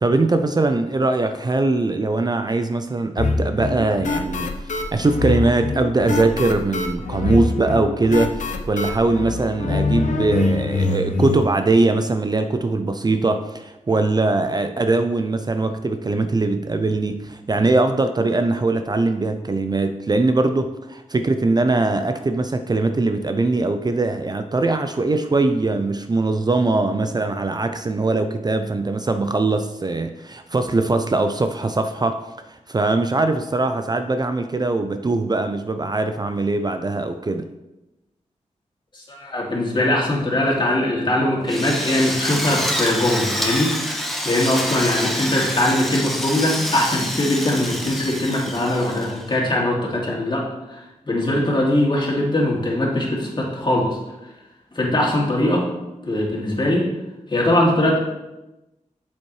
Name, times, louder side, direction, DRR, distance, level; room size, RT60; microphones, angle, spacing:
voice 1, 0.0-4.5 4.9-32.2 32.5-37.5, right 2 dB, 30° right, 8 dB, 0.5 m, -21 dB
sound 1, 3.2-11.4, left 3 dB, 75° left, 0.8 m, -24 dB
voice 2, 38.9-53.9 54.7-55.7 56.1-56.9 57.3-58.0, left 1 dB, 40° left, -3 dB, 2.5 m, -21 dB
Drill, 41.5-49.3, equal, ahead, 1.2 m, -27 dB
7.4 x 7.3 x 3.2 m, 0.99 s
cardioid pair, 55°, 13 cm